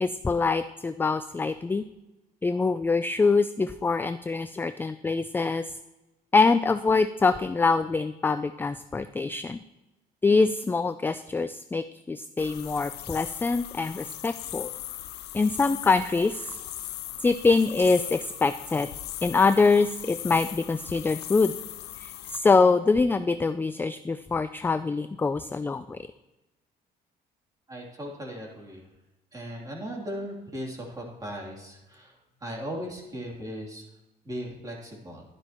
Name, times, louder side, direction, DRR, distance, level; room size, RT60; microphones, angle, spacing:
voice 1, 0.0-1.8 2.4-5.6 6.3-9.6 10.2-14.7 15.3-16.6 17.2-18.9 19.2-21.6 22.0-26.0, left 4 dB, 10° left, 10 dB, 0.3 m, -24 dB
sound 1, 12.4-22.4, left 13 dB, 80° left, 0.7 m, -39 dB
voice 2, 27.7-28.8 29.3-33.8 34.2-35.2, equal, 20° right, -1 dB, 2.9 m, -37 dB
11.5 x 11.0 x 3.0 m, 1.0 s
cardioid pair, 110°, 17 cm